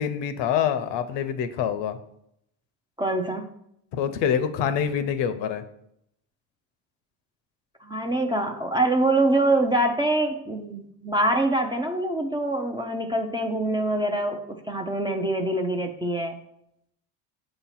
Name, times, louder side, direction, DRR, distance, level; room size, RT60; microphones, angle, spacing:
voice 1, 0.0-2.0 3.9-5.6, left 8 dB, 60° left, 11 dB, 0.8 m, -26 dB
voice 2, 3.0-3.4 7.8-16.4, right 2 dB, 10° right, 3 dB, 0.5 m, -25 dB
6.8 x 2.9 x 5.6 m, 0.77 s
supercardioid pair, 85°, 49 cm